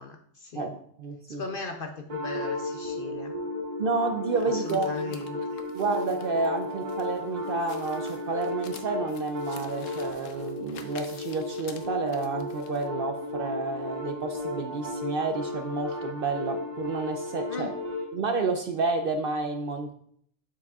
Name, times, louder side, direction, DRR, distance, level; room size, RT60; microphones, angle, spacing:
voice 1, 0.0-0.7 1.3-3.3 4.5-5.4 17.5-17.7, left 3 dB, 60° left, 5 dB, 0.6 m, -38 dB
voice 2, 0.5-1.4 3.8-5.2 5.7-17.7 18.1-19.9, right 3 dB, 60° right, 5 dB, 0.6 m, -30 dB
sound 1, 2.1-18.1, left 2 dB, 35° right, 1.3 m, -34 dB
sound 2, 4.3-12.9, left 7 dB, 80° left, 1.0 m, -49 dB
7.3 x 7.0 x 2.3 m, 0.66 s
omnidirectional pair, 1.3 m